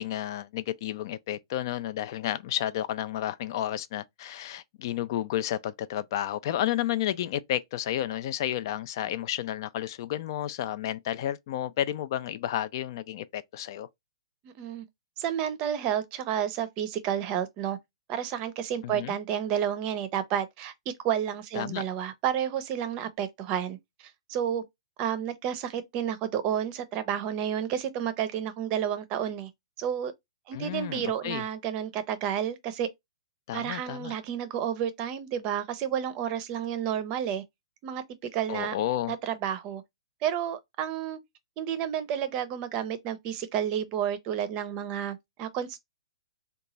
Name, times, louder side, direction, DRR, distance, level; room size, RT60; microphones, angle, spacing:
voice 1, 0.0-13.9 18.8-19.1 21.5-21.8 30.5-31.4 33.5-34.1 38.5-39.1, left 12 dB, 50° left, 0.3 m, -31 dB
voice 2, 14.4-14.9 15.2-17.8 18.1-20.7 21.0-24.6 25.0-29.5 29.8-30.1 30.5-32.9 33.5-37.4 37.8-38.8 39.1-39.8 40.2-41.2 41.6-45.8, right 9 dB, 35° right, 0.6 m, -31 dB
3.0 x 2.3 x 3.8 m
hypercardioid pair, 135°, 3 cm